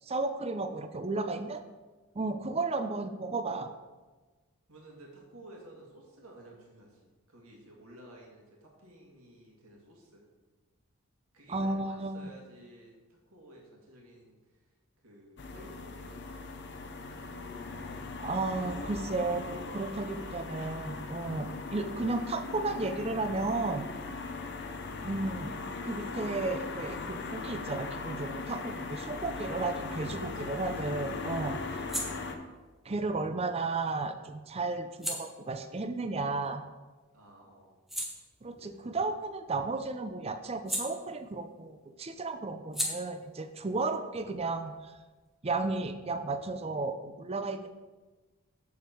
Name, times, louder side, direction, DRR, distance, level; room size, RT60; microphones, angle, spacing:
voice 1, 0.1-1.6 2.2-3.7 11.5-12.3 18.2-23.8 25.0-25.6 25.8-31.6 32.9-36.6 38.4-44.9 45.4-47.7, right 3 dB, 25° right, 9 dB, 0.5 m, -33 dB
voice 2, 4.7-10.2 11.3-12.9 13.3-14.6 15.0-16.6 17.8-18.1 19.9-20.5 21.4-21.7 24.3-24.7 30.2-30.6 37.1-37.8, right 1 dB, 70° right, -2 dB, 2.1 m, -54 dB
sound 1, 15.4-32.4, left 3 dB, 50° left, 0.7 m, -39 dB
sound 2, 31.7-37.0 37.4-41.6 41.9-45.3, equal, ahead, 0.9 m, -42 dB
7.2 x 7.1 x 4.5 m, 1.3 s
head